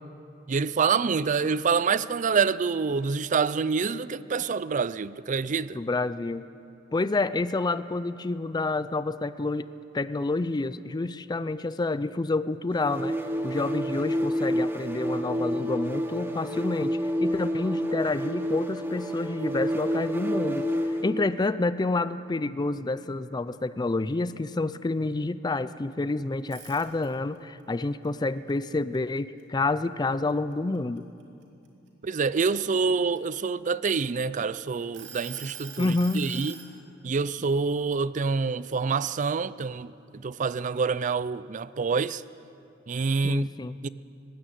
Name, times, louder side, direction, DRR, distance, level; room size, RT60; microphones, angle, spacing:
voice 1, 0.5-5.8 32.0-36.6 37.0-42.2 42.9-43.5 43.8-43.9, right 5 dB, 40° right, 0.5 m, -27 dB
voice 2, 5.8-6.5 6.9-9.7 9.9-13.2 13.4-20.7 21.0-31.0 35.8-36.3 43.2-43.8, left 2 dB, 20° left, 0.4 m, -28 dB
sound 1, 12.7-21.1, equal, 15° right, 1.3 m, -29 dB
sound 2, 26.4-27.4 27.8-29.6 30.1-30.3 30.8-32.6 33.3-34.4 34.9-36.7, right 8 dB, 70° right, 2.8 m, -44 dB
19.5 x 15.5 x 8.9 m
head